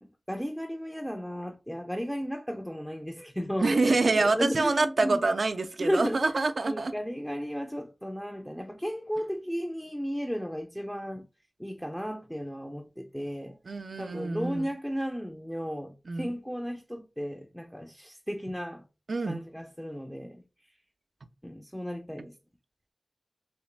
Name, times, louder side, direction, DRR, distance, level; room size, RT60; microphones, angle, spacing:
voice 1, 0.0-5.2 5.8-6.3 6.6-11.3 11.6-13.6 14.0-18.9 19.3-20.4 21.4-22.4, equal, 5° left, 0.4 m, -34 dB
voice 2, 3.6-6.9 13.7-14.7 16.1-16.4 19.1-19.4, right 3 dB, 80° right, 0.3 m, -26 dB
3.1 x 2.9 x 3.2 m
wide cardioid pair, 50°, 0 cm